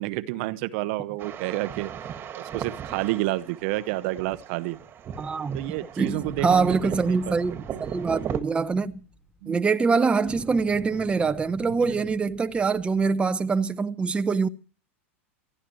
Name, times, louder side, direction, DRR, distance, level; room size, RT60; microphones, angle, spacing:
voice 1, 0.0-1.9 2.4-4.8 5.5-7.3 7.7-7.9 9.4-9.7 11.8-12.0, right 18 dB, 60° right, 0.9 m, -30 dB
sound 1, 1.2-8.4, right 8 dB, 30° right, 1.7 m, -37 dB
voice 2, 5.2-5.7 6.0-8.9 9.5-14.5, right 4 dB, 15° right, 0.8 m, -24 dB
sound 2, 6.2-9.8 10.3-13.6, left 1 dB, 5° left, 2.5 m, -47 dB
27.5 x 11.0 x 3.1 m
hypercardioid pair, 110°, 7 cm